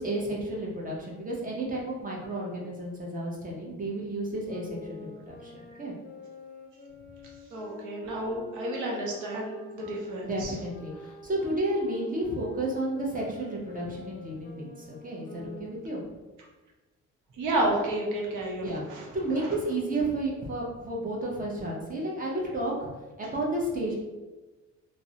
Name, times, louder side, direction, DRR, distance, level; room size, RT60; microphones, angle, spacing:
voice 1, 0.0-5.5 5.8-6.0 10.2-16.0 18.6-22.9 23.2-23.9, right 1 dB, 30° right, -3 dB, 0.6 m, -32 dB
sound 1, 4.4-10.0 10.7-16.1, left 3 dB, 35° left, 0.5 m, -47 dB
voice 2, 7.5-10.5 17.4-19.1 19.4-19.5, right 1 dB, 90° right, -2 dB, 0.7 m, -31 dB
2.4 x 2.0 x 2.7 m, 1.2 s
cardioid pair, 90°, 30 cm